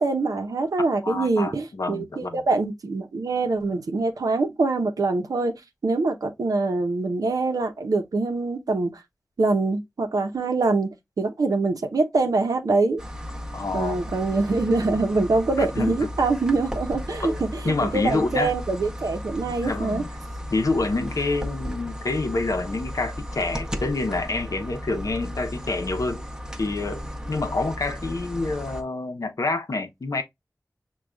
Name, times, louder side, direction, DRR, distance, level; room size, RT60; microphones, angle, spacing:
voice 1, 0.0-5.5 5.8-9.0 9.4-13.0 13.7-20.0, right 3 dB, 90° right, 0.7 m, -24 dB
voice 2, 1.0-2.4 13.5-14.1 15.6-16.1 17.2-18.5 19.6-20.1 20.5-26.2 26.6-27.0 27.3-30.2, left 3 dB, 70° left, 0.7 m, -27 dB
sound 1, 13.0-28.8, equal, 10° right, 0.7 m, -35 dB
6.2 x 2.3 x 2.2 m
cardioid pair, 40°, 6 cm